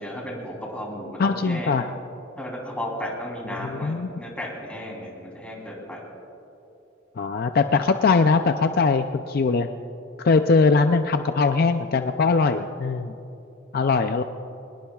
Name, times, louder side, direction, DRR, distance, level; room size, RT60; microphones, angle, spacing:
voice 1, 0.0-1.8 2.4-6.0, equal, 5° left, -2 dB, 3.3 m, -34 dB
voice 2, 1.2-1.9 3.6-4.1 7.2-9.7 10.2-13.1 13.7-14.2, left 4 dB, 50° left, 8 dB, 0.5 m, -21 dB
23.0 x 20.5 x 2.4 m, 3.0 s
head